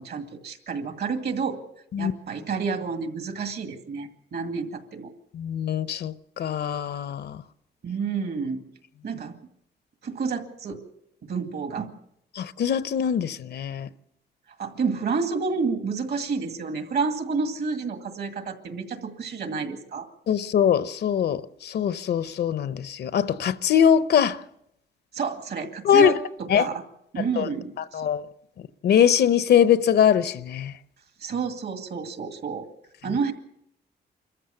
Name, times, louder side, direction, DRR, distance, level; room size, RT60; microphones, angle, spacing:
voice 1, 0.0-1.6 2.0-5.1 7.8-8.7 9.0-9.4 10.0-10.8 11.2-11.9 14.6-20.1 25.1-26.8 27.1-28.0 31.2-32.7 33.0-33.3, right 5 dB, 65° right, 2.2 m, -29 dB
voice 2, 5.3-7.4 12.4-13.9 20.3-24.4 25.8-26.2 26.5-26.7 27.4-27.5 27.9-28.2 28.8-30.7, left 8 dB, 65° left, 0.8 m, -22 dB
25.5 x 14.5 x 7.1 m
cardioid pair, 120°, 18 cm